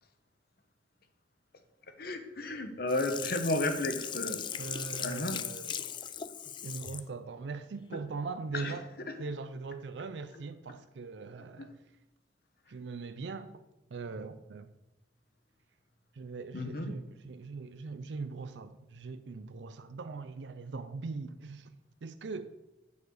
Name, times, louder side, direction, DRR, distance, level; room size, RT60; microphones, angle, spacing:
voice 1, 2.0-4.4 5.0-5.4 7.9-8.0 8.5-8.7 16.5-16.9, left 2 dB, 60° left, 1.0 m, -33 dB
Sink (filling or washing), 2.9-7.1 7.5-7.6, left 9 dB, 25° left, 0.3 m, -39 dB
voice 2, 4.6-5.8 6.5-8.9 9.2-11.8 12.7-13.5 13.9-14.8 16.1-21.7 22.0-22.5, right 4 dB, 80° right, 0.5 m, -41 dB
8.4 x 4.7 x 6.5 m
head